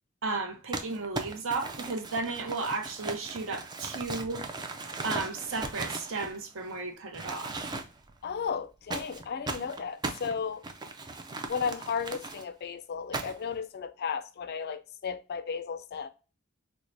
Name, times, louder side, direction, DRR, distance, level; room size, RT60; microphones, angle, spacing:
voice 1, 0.2-4.5 5.0-7.7, right 3 dB, 65° right, 0.7 m, -34 dB
Crumpling crinkling, 0.7-6.8 7.1-8.1 8.9-12.4 13.1-13.6, right 3 dB, 20° right, 0.4 m, -38 dB
voice 2, 8.2-10.6 11.5-16.1, left 6 dB, 50° left, 0.4 m, -34 dB
4.5 x 2.1 x 2.5 m
head